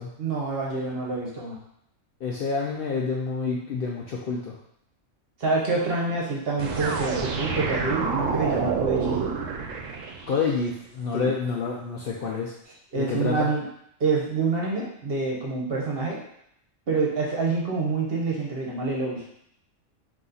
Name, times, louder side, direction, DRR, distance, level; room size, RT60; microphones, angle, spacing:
voice 1, 0.2-1.6 5.4-9.2 11.1-11.3 12.9-13.7 14.0-16.2 16.9-19.2, right 3 dB, 50° right, -3 dB, 1.1 m, -27 dB
voice 2, 2.2-4.5 10.3-12.5 13.0-13.5, left 5 dB, 60° left, -2 dB, 0.6 m, -28 dB
sound 1, 6.6-10.5, right 5 dB, 75° right, 1.0 m, -28 dB
4.2 x 2.8 x 3.9 m, 0.72 s
omnidirectional pair, 1.4 m